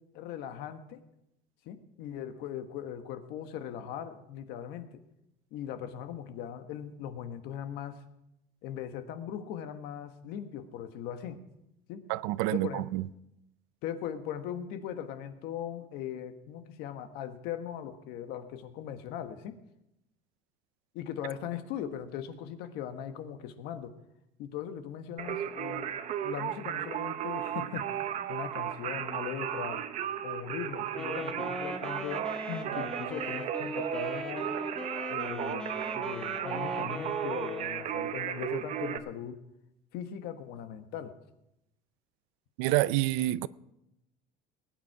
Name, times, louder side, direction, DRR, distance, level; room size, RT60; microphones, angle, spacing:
voice 1, 0.1-1.0 1.6-5.0 5.5-8.0 8.6-11.4 11.9-12.1 12.5-12.8 13.8-19.5 20.9-24.0 24.4-26.0 26.2-29.8 30.2-34.5 35.1-39.4 39.9-41.1, left 9 dB, 70° left, 1.3 m, -39 dB
voice 2, 12.1-13.1 42.6-43.5, right 17 dB, 85° right, 0.5 m, -28 dB
Singing, 25.2-39.0, right 10 dB, 45° right, 0.8 m, -35 dB
Wind instrument woodwind instrument, 30.9-38.0, equal, 5° left, 1.1 m, -40 dB
20.0 x 9.4 x 4.8 m
cardioid pair, 150°, 17 cm